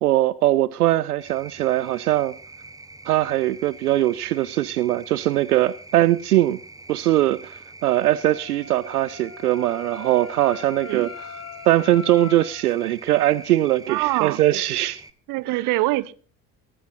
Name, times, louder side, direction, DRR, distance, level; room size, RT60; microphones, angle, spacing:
voice 1, 0.0-2.3 3.1-6.6 6.9-11.1 11.7-15.0 15.5-15.7, right 15 dB, 75° right, 0.5 m, -21 dB
sound 1, 1.2-15.1, right 2 dB, 10° right, 0.9 m, -44 dB
Wind instrument woodwind instrument, 8.0-12.7, left 7 dB, 35° left, 1.8 m, -40 dB
voice 2, 13.9-14.4 15.3-16.1, right 19 dB, 45° right, 0.8 m, -24 dB
20.5 x 14.0 x 2.6 m
figure-of-eight pair, 60°, 46 cm